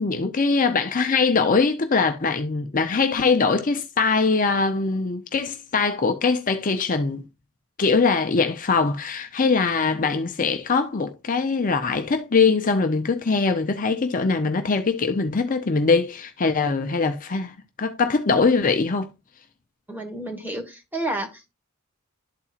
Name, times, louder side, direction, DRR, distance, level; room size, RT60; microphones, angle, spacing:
voice 1, 0.0-7.2 7.8-19.1, left 4 dB, 40° left, 0.6 m, -22 dB
voice 2, 19.9-21.5, right 1 dB, 10° right, 1.4 m, -30 dB
12.0 x 4.2 x 2.4 m
head